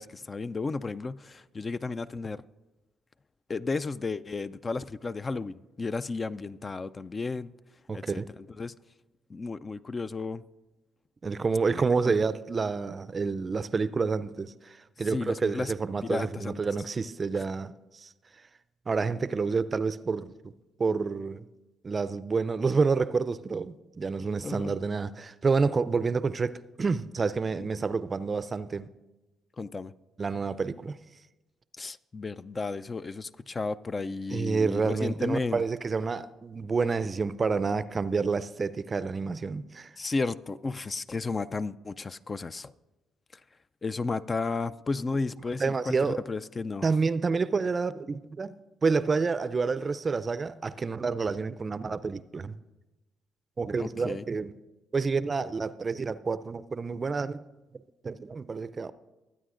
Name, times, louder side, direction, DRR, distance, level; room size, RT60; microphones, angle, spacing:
voice 1, 0.0-2.4 3.5-7.5 7.9-8.2 8.6-8.7 9.3-10.4 11.8-12.1 15.0-15.7 16.0-16.6 17.3-17.4 24.4-24.8 29.6-29.9 31.8-35.6 40.0-42.7 43.8-46.8 53.8-54.2, left 3 dB, 35° left, 0.4 m, -33 dB
voice 2, 7.9-8.3 11.2-18.1 18.9-20.5 20.8-21.4 21.8-28.9 30.2-31.0 34.3-39.9 45.6-46.2 46.8-48.5 48.8-52.6 53.6-54.5 54.9-57.4 58.0-58.9, right 4 dB, 40° right, 0.4 m, -29 dB
21.5 x 8.9 x 2.5 m
hypercardioid pair, 55°, 0 cm